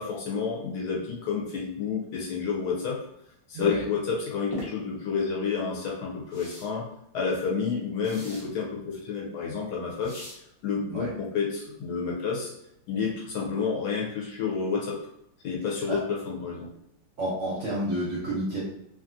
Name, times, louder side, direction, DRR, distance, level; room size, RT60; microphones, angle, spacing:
voice 1, 0.0-3.0 3.5-6.8 7.1-10.3 10.6-12.5 12.9-15.0 15.4-16.0 16.3-16.7, left 5 dB, 70° left, -2 dB, 1.1 m, -30 dB
voice 2, 3.5-3.9 10.9-11.1 15.9-16.0 17.2-18.6, right 1 dB, 65° right, -6 dB, 0.8 m, -30 dB
sound 1, 4.5-4.7 6.3-6.7 8.0-8.5 10.0-10.4, left 1 dB, 25° left, 0.4 m, -39 dB
2.9 x 2.4 x 2.5 m, 0.75 s
omnidirectional pair, 2.0 m